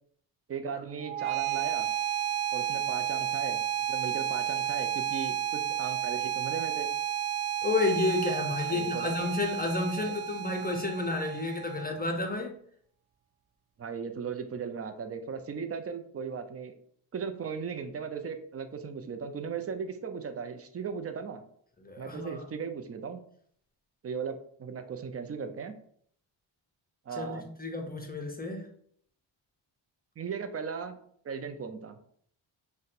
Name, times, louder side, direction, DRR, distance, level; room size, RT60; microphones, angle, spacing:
voice 1, 0.5-1.9 2.5-3.6 3.9-6.9 8.7-9.1 10.0-10.1 13.8-16.7 17.1-21.4 22.0-23.2 24.0-25.7 27.1-27.5 30.2-31.0 31.2-32.0, right 6 dB, 30° right, 7 dB, 0.4 m, -37 dB
sound 1, 1.0-12.0, right 10 dB, 80° right, 0.6 m, -32 dB
voice 2, 7.6-12.6 21.8-22.4 27.1-28.7, left 3 dB, 20° left, 3 dB, 0.5 m, -31 dB
2.5 x 2.2 x 3.9 m, 0.63 s
cardioid pair, 60°, 49 cm